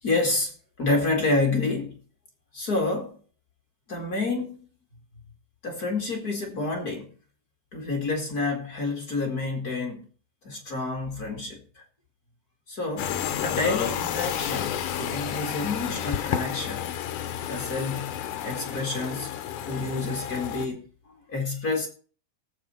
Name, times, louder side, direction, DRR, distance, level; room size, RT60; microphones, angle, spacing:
voice 1, 0.0-2.0 2.5-3.2 3.9-4.7 5.6-7.1 7.7-10.0 10.4-11.8 12.7-13.1 13.4-16.9 17.5-19.4 19.7-21.9, left 3 dB, 30° left, 1.8 m, -29 dB
sound 1, 13.0-20.7, left 10 dB, 80° left, 1.8 m, -31 dB
18.5 x 7.1 x 4.4 m
omnidirectional pair, 4.9 m